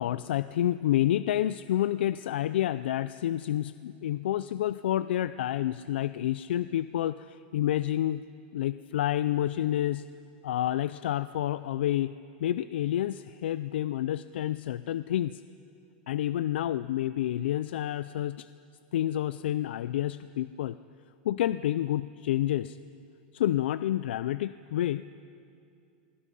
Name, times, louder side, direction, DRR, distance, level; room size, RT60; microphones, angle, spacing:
voice 1, 0.0-8.3 8.5-10.0 10.4-12.1 12.4-15.4 16.1-18.5 18.9-20.8 21.2-22.8 23.3-25.0, left 12 dB, 80° left, 14 dB, 0.4 m, -29 dB
25.5 x 21.0 x 5.5 m, 2.5 s
supercardioid pair, 165°, 6 cm